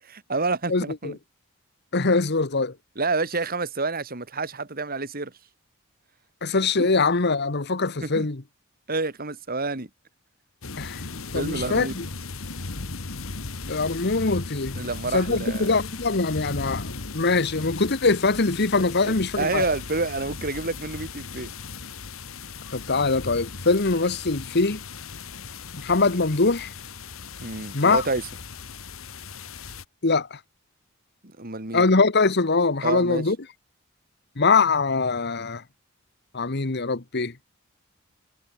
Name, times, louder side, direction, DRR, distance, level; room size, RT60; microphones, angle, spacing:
voice 1, 0.1-1.2 3.0-5.3 6.8-7.0 8.0-8.3 8.9-9.9 11.3-11.9 14.7-15.7 18.8-21.5 27.4-28.2 31.4-31.9 32.8-33.2, right 3 dB, 45° right, 2.7 m, -29 dB
voice 2, 0.7-1.1 1.9-2.7 6.4-8.4 10.8-12.0 13.7-14.8 15.1-16.9 17.1-19.6 22.7-24.8 25.7-26.7 27.7-28.0 30.0-30.4 31.7-33.4 34.4-35.6 36.3-37.3, left 3 dB, 50° left, 1.3 m, -23 dB
sound 1, 10.6-29.9, left 4 dB, 70° left, 1.8 m, -37 dB
head